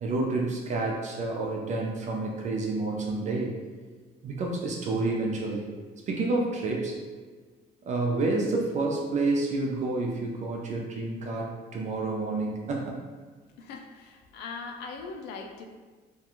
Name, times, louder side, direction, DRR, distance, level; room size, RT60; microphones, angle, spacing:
voice 1, 0.0-3.6 4.2-5.7 6.1-7.0 7.8-13.0, right 2 dB, 45° right, -1 dB, 0.4 m, -29 dB
voice 2, 13.6-15.7, left 4 dB, 85° left, 4 dB, 0.4 m, -40 dB
2.4 x 2.2 x 2.9 m, 1.5 s
cardioid pair, 110°, 17 cm